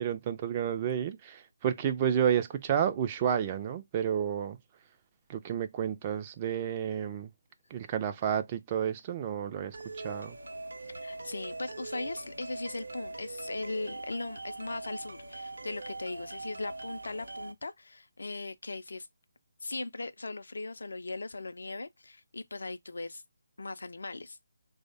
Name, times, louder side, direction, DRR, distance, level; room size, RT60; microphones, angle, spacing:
voice 1, 0.0-4.6 5.3-7.3 7.7-10.4, right 9 dB, 25° right, 0.3 m, -31 dB
sound 1, 9.7-17.5, right 2 dB, 65° right, 0.6 m, -42 dB
voice 2, 11.0-19.1 19.6-23.2 23.6-24.4, left 3 dB, 60° left, 0.4 m, -39 dB
3.2 x 2.0 x 3.8 m
figure-of-eight pair, 145°, 0 cm